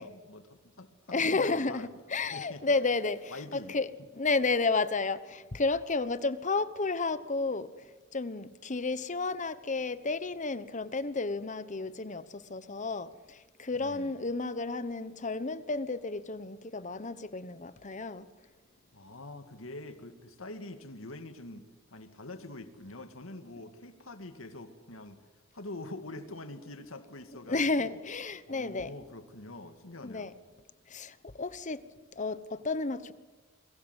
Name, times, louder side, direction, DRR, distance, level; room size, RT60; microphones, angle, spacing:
voice 1, 0.0-1.9 2.3-2.6 3.3-3.8 13.7-14.2 18.9-21.6 21.9-25.2 25.5-28.0 28.5-30.3, left 2 dB, 85° left, 2.2 m, -45 dB
voice 2, 1.1-7.7 8.1-18.2 27.5-28.9 30.0-30.3 30.9-31.8 32.2-33.1, left 3 dB, 40° left, 1.1 m, -32 dB
28.0 x 22.0 x 8.2 m
head